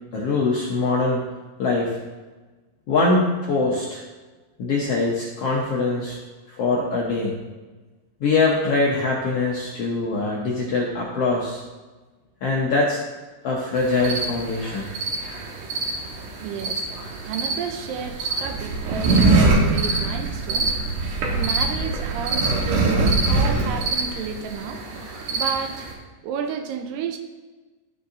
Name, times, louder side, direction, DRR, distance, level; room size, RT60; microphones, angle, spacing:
voice 1, 0.1-1.2 1.6-2.0 2.9-4.0 4.6-6.2 6.6-7.3 8.2-11.6 12.4-13.0 13.4-14.9, left 3 dB, 70° left, -3 dB, 1.4 m, -22 dB
sound 1, 13.8-25.9, right 3 dB, 70° right, 2.6 m, -24 dB
voice 2, 16.4-25.9 26.2-27.2, right 7 dB, 85° right, 6 dB, 2.4 m, -32 dB
12.5 x 6.6 x 2.6 m, 1.3 s
omnidirectional pair, 3.9 m